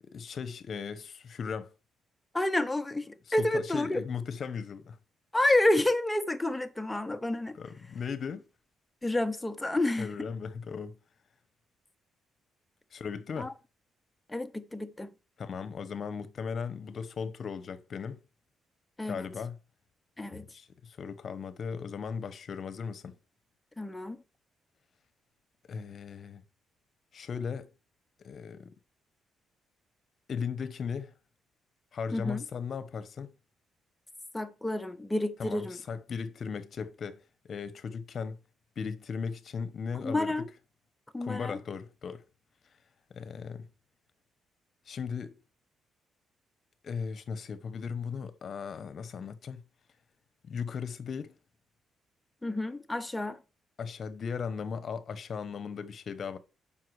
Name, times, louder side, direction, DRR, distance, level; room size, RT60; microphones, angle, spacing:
voice 1, 0.0-1.7 3.3-5.0 7.5-8.4 10.0-11.0 12.9-13.5 15.4-18.2 19.1-19.6 20.3-23.2 25.7-26.4 27.1-27.7 28.2-28.7 30.3-31.1 31.9-33.3 35.4-38.4 38.8-40.5 41.2-42.2 43.1-43.7 44.9-45.4 46.8-49.6 50.4-51.3 53.8-56.4, left 6 dB, 50° left, 1.0 m, -37 dB
voice 2, 2.3-4.0 5.3-7.5 9.0-10.1 13.4-13.5 14.3-15.1 19.0-19.2 20.2-20.5 23.8-24.2 32.1-32.4 34.3-35.8 40.0-40.5 41.1-41.5 52.4-53.4, left 1 dB, 10° left, 0.9 m, -29 dB
7.4 x 5.7 x 4.7 m
cardioid pair, 90°, 0 cm